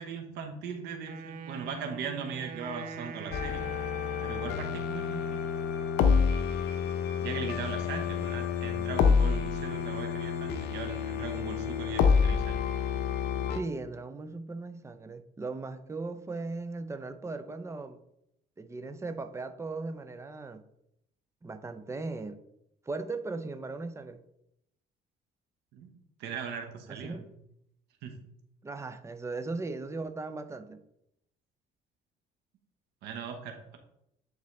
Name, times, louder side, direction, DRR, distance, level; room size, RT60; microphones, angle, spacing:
voice 1, 0.0-3.7 4.2-5.4 7.2-12.6 25.7-25.9 26.2-27.3 28.0-28.2 33.0-33.8, right 6 dB, 85° right, 1.1 m, -39 dB
Wind instrument woodwind instrument, 1.0-5.0, right 5 dB, 55° right, 0.7 m, -43 dB
sound 1, 3.3-13.6, left 6 dB, 80° left, 0.7 m, -28 dB
voice 2, 13.5-18.0 18.6-20.6 21.4-22.4 22.9-24.2 26.9-27.3 28.6-30.8, right 3 dB, 15° right, 0.6 m, -38 dB
9.6 x 4.0 x 3.2 m
cardioid pair, 110°, 17 cm